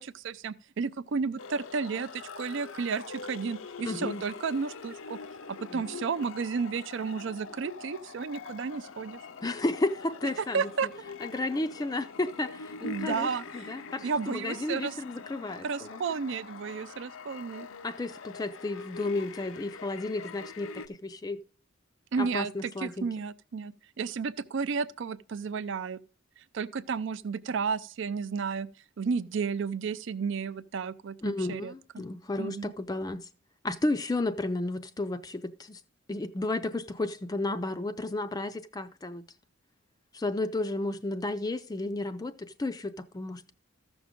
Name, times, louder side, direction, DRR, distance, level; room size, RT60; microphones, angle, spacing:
voice 1, 0.0-5.2 5.6-9.2 10.4-10.9 12.8-13.7 14.0-15.0 15.6-17.7 22.1-26.0 26.4-28.7 29.0-32.0 32.4-32.7, right 5 dB, 65° right, 0.4 m, -32 dB
sound 1, 1.4-20.9, left 4 dB, 75° left, 0.5 m, -43 dB
voice 2, 3.8-4.2 5.7-5.8 9.4-10.7 11.2-13.3 13.5-16.0 17.8-21.4 22.2-23.1 31.2-33.3 33.6-35.8 36.1-39.2 40.1-43.5, left 2 dB, 20° left, 0.4 m, -33 dB
14.0 x 6.2 x 3.7 m
head